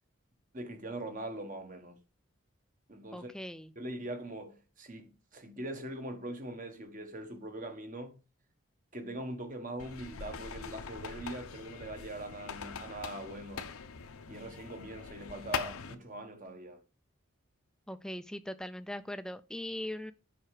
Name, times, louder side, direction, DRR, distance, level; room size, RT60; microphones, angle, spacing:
voice 1, 0.5-2.0 2.9-3.3 3.7-8.2 8.9-13.7 14.3-16.8, right 1 dB, 40° right, 1.4 m, -42 dB
voice 2, 3.1-3.7 17.9-20.1, left 1 dB, 5° left, 0.4 m, -40 dB
sound 1, 9.8-15.9, left 6 dB, 90° left, 0.8 m, -42 dB
7.4 x 5.9 x 4.8 m
head